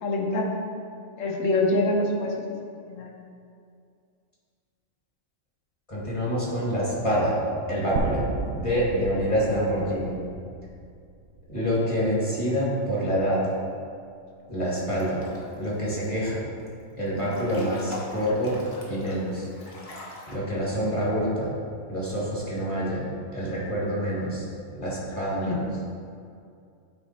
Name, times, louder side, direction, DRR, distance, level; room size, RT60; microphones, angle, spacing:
voice 1, 0.0-0.5 1.2-2.5 2.9-3.1 25.1-25.6, left 2 dB, 80° left, 0 dB, 1.3 m, -26 dB
voice 2, 5.9-7.4 7.7-8.2 8.5-10.2 11.5-13.4 14.5-15.2 15.5-16.4 17.0-18.6 18.9-19.5 20.3-21.5 21.9-24.4 24.7-25.6, equal, 25° left, -7 dB, 1.7 m, -26 dB
sound 1, 8.0-12.0, right 4 dB, 80° right, 0.9 m, -34 dB
Breathing / Bathtub (filling or washing) / Splash splatter, 14.9-15.7 16.0-16.7 17.1-20.4, left 2 dB, 40° left, 1.2 m, -43 dB
9.1 x 3.6 x 4.2 m, 2.4 s
omnidirectional pair, 1.3 m